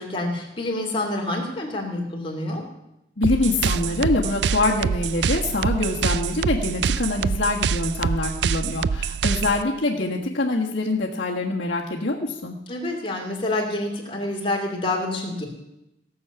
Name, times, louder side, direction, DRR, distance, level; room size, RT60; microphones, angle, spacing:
voice 1, 0.0-2.6 12.7-15.5, left 2 dB, 30° left, 1 dB, 2.7 m, -27 dB
voice 2, 3.2-12.5, left 2 dB, 65° left, -5 dB, 1.5 m, -24 dB
sound 1, 3.2-9.6, right 6 dB, 60° right, 0.4 m, -25 dB
17.0 x 7.2 x 7.0 m, 0.88 s
head